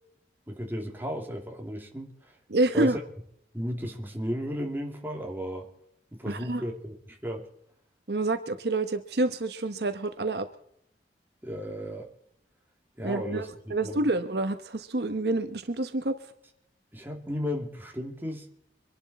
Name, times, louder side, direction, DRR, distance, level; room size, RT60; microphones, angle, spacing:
voice 1, 0.5-2.2 2.7-3.0 3.5-5.7 6.1-7.5 11.4-12.1 13.0-14.1 16.9-18.5, equal, 10° right, 2 dB, 2.6 m, -34 dB
voice 2, 2.5-3.0 6.3-6.6 8.1-10.5 13.0-13.4 13.7-16.2, right 2 dB, 65° right, 9 dB, 1.0 m, -28 dB
25.0 x 11.5 x 4.2 m, 0.74 s
head